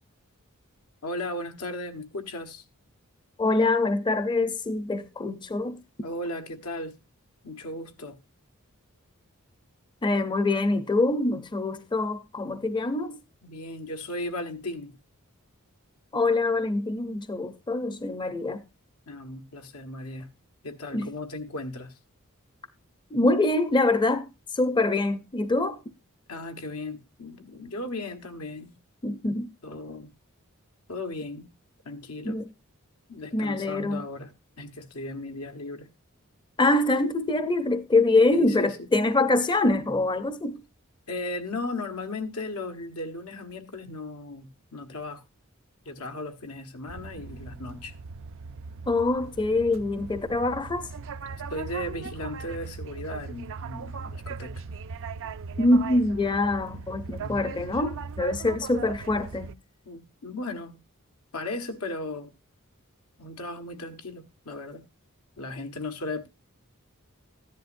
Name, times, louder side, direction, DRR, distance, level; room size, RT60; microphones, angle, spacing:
voice 1, 1.0-2.6 6.0-7.0 7.4-8.2 13.4-15.0 19.1-20.3 20.6-21.9 26.3-28.7 29.6-30.1 30.9-31.5 31.8-32.4 33.1-35.9 38.3-38.9 41.1-45.2 45.8-47.9 51.5-54.6 57.2-57.7 59.8-60.8 61.3-62.3 63.2-64.9 65.4-66.3, left 2 dB, 85° left, 1.3 m, -36 dB
voice 2, 3.4-5.8 10.0-13.2 16.1-18.6 20.9-21.1 23.1-24.3 24.5-25.8 29.0-29.5 32.2-32.4 33.3-34.0 36.6-40.6 48.9-50.9 55.6-59.5, left 2 dB, 20° left, 0.6 m, -24 dB
sound 1, 46.9-59.5, right 5 dB, 60° right, 0.5 m, -39 dB
14.0 x 10.5 x 2.6 m
head